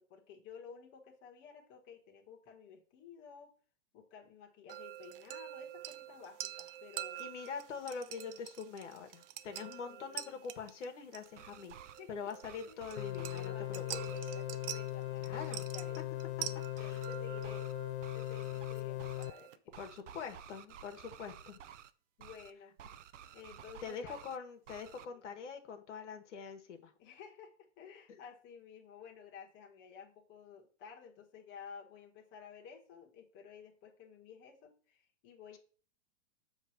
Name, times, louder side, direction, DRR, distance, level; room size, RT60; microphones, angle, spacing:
voice 1, 0.0-3.5 3.9-7.2 8.1-8.4 9.9-10.4 11.4-11.7 12.0-12.1 12.7-13.0 13.3-17.7 18.1-19.7 22.2-22.8 23.3-24.2 25.1-25.2 27.0-35.6, left 7 dB, 30° left, 1 dB, 1.5 m, -54 dB
ice cubes in a glass, 4.7-19.6, right 12 dB, 50° right, 0.6 m, -47 dB
voice 2, 7.2-11.7 12.1-13.8 15.2-15.6 16.8-17.1 19.8-21.6 23.8-26.9, left 6 dB, 80° left, 6 dB, 1.4 m, -44 dB
sound 1, 11.3-12.0 12.4-13.5 13.9-14.2 15.3-15.6 16.8-17.1 17.4-17.7 18.0-19.3 19.7-21.9 22.2-22.5 22.8-24.4 24.7-25.1, right 9 dB, 85° right, 0.7 m, -53 dB
sound 2, 13.0-19.3, left 15 dB, 65° left, 0.5 m, -39 dB
7.2 x 3.3 x 5.8 m, 0.41 s
hypercardioid pair, 140°, 36 cm